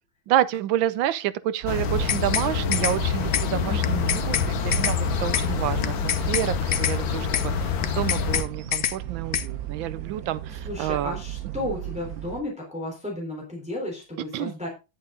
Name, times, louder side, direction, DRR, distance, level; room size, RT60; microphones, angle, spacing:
voice 1, 0.3-11.2 14.3-14.5, right 12 dB, 90° right, 1.5 m, -28 dB
sound 1, 1.6-12.4, right 11 dB, 60° right, 1.1 m, -35 dB
sound 2, 1.7-8.4, left 7 dB, 90° left, 1.9 m, -27 dB
sound 3, 1.8-2.5 2.7-3.0 3.3-3.5 3.8-4.5 4.7-5.0 5.3-5.5 5.8-6.5 6.7-7.0 7.3-7.5 7.8-8.5 8.7-9.0 9.3-9.5, left 11 dB, 65° left, 1.1 m, -25 dB
voice 2, 3.6-4.2 10.5-14.7, left 1 dB, 5° right, 3.6 m, -33 dB
11.0 x 7.9 x 3.8 m
omnidirectional pair, 2.1 m